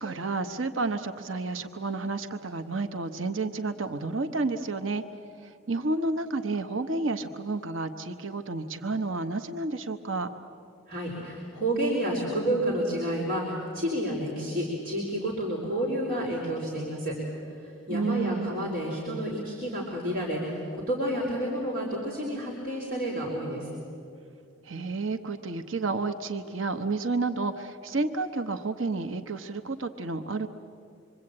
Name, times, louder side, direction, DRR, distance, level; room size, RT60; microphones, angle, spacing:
voice 1, 0.0-5.0 5.4-10.3 17.9-18.6 24.6-30.5, right 3 dB, 80° right, 7 dB, 1.0 m, -31 dB
voice 2, 10.9-17.2 17.6-23.7, right 1 dB, 45° right, -4 dB, 4.4 m, -30 dB
26.5 x 23.5 x 8.8 m, 2.5 s
head